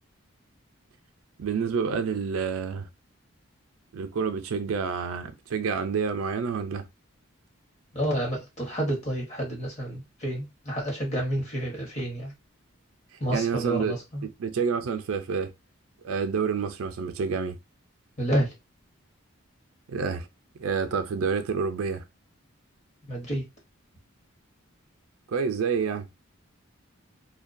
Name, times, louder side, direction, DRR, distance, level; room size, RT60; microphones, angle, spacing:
voice 1, 1.4-2.9 3.9-6.9 13.3-15.5 16.0-17.6 19.9-20.3 20.6-22.0 25.3-26.1, right 5 dB, 80° right, 0.4 m, -28 dB
voice 2, 7.9-12.3 13.2-14.3 18.2-18.5 23.1-23.4, right 1 dB, 30° left, 0.9 m, -29 dB
2.2 x 2.2 x 2.5 m
head